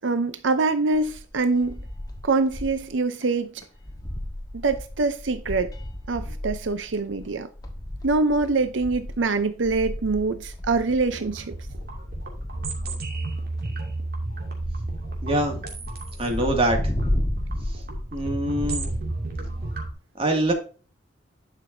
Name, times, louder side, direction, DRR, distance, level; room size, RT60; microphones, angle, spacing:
voice 1, 0.0-1.8 2.2-3.6 4.5-5.7 6.1-7.5 8.0-11.6, right 3 dB, 90° right, 0.7 m, -24 dB
sound 1, 0.9-2.9 3.2-3.3 3.6-19.9, left 1 dB, 20° left, 1.6 m, -34 dB
sound 2, 11.1-19.9, right 2 dB, 55° right, 2.5 m, -33 dB
voice 2, 15.2-15.6 16.2-16.8 18.1-18.9 20.2-20.5, right 1 dB, 30° right, 2.3 m, -24 dB
11.0 x 6.0 x 2.7 m
head